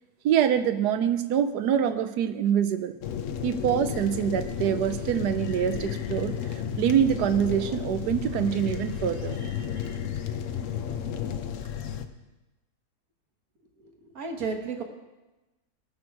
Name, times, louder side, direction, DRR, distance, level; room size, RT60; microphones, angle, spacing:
voice 1, 0.2-3.0 3.4-9.7, right 9 dB, 85° right, 11 dB, 1.3 m, -25 dB
sound 1, 3.0-12.0, left 8 dB, 60° left, 1.0 m, -33 dB
voice 2, 13.8-14.8, right 4 dB, 65° right, 3 dB, 1.8 m, -33 dB
17.5 x 6.2 x 4.7 m, 1.1 s
omnidirectional pair, 1.7 m